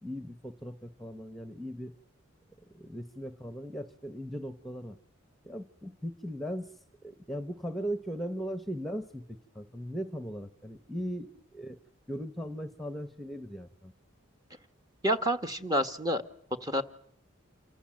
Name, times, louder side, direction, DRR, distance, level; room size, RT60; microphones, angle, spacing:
voice 1, 0.0-1.9 2.7-5.0 5.4-6.8 7.0-11.8 12.1-13.9, equal, ahead, 11 dB, 1.1 m, -38 dB
voice 2, 15.0-16.2 16.6-16.8, equal, 20° right, 7 dB, 1.4 m, -28 dB
28.0 x 25.5 x 7.6 m, 0.64 s
head